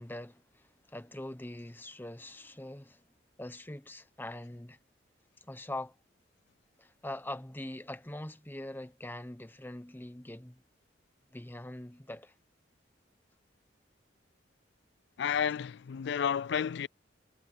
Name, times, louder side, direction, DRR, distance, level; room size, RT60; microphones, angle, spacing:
voice 1, 0.0-3.0 3.4-4.8 5.4-5.9 6.8-10.6 11.3-12.3, left 1 dB, 10° left, 1.1 m, -43 dB
voice 2, 15.2-16.9, left 7 dB, 65° left, 0.4 m, -31 dB
head